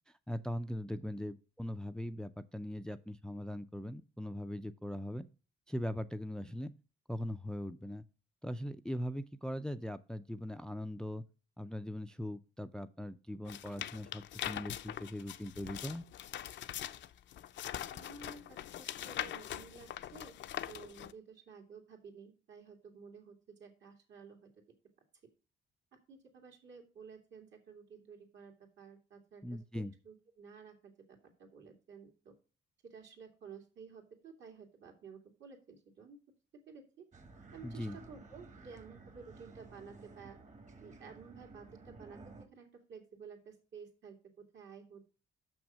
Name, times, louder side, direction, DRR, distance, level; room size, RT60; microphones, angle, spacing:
voice 1, 0.1-5.3 5.7-6.7 7.1-8.0 8.4-11.2 11.6-16.0 29.4-29.9 37.6-38.0, equal, 5° left, 11 dB, 0.4 m, -40 dB
sound 1, 13.5-21.1, left 11 dB, 65° left, 0.5 m, -42 dB
voice 2, 17.9-20.4 20.7-24.5 26.1-32.3 32.8-36.2 36.7-37.1 37.5-40.4 40.8-45.1, right 5 dB, 65° right, 4 dB, 2.4 m, -53 dB
sound 2, 37.1-42.5, right 3 dB, 35° right, 1.5 m, -54 dB
6.3 x 6.1 x 6.1 m, 0.36 s
cardioid pair, 90°, 20 cm